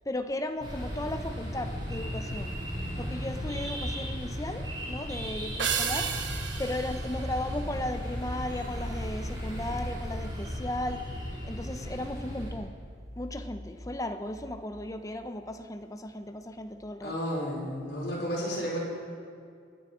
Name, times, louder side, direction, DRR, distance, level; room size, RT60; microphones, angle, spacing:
voice 1, 0.0-2.5 3.0-6.1 6.6-11.0 11.4-12.7 13.2-17.1, left 1 dB, 20° left, 8 dB, 0.7 m, -35 dB
sound 1, 0.6-12.5, equal, 20° right, 4.4 m, -36 dB
sound 2, 5.6-8.2, right 7 dB, 75° right, 1.1 m, -33 dB
voice 2, 17.0-18.8, equal, 60° left, -4 dB, 4.4 m, -32 dB
25.0 x 9.4 x 5.1 m, 2.2 s
head